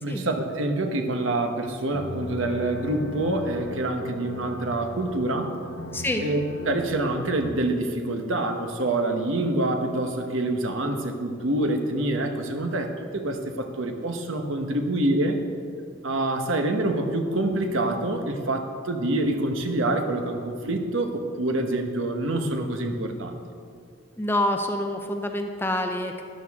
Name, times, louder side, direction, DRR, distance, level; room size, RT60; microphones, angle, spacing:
voice 1, 0.0-5.5 6.2-15.4 16.0-23.4, right 2 dB, 70° right, 5 dB, 1.1 m, -26 dB
sound 1, 1.9-7.3, left 2 dB, 70° left, 1.1 m, -38 dB
voice 2, 5.9-6.2 24.2-26.2, left 1 dB, 10° left, 4 dB, 0.6 m, -27 dB
13.0 x 11.5 x 3.6 m, 2.3 s
head